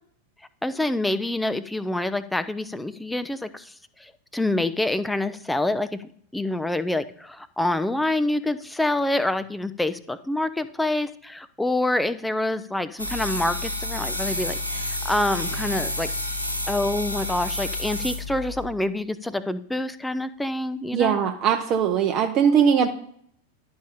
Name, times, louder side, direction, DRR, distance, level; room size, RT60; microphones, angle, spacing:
voice 1, 0.6-3.7 4.0-16.1 16.7-21.2, left 1 dB, 5° left, 13 dB, 0.5 m, -26 dB
sound 1, 13.0-18.6, left 1 dB, 90° left, 1.2 m, -30 dB
voice 2, 20.9-22.9, right 7 dB, 35° right, 5 dB, 0.7 m, -20 dB
11.5 x 4.7 x 4.2 m, 0.65 s
figure-of-eight pair, 90°, 0 cm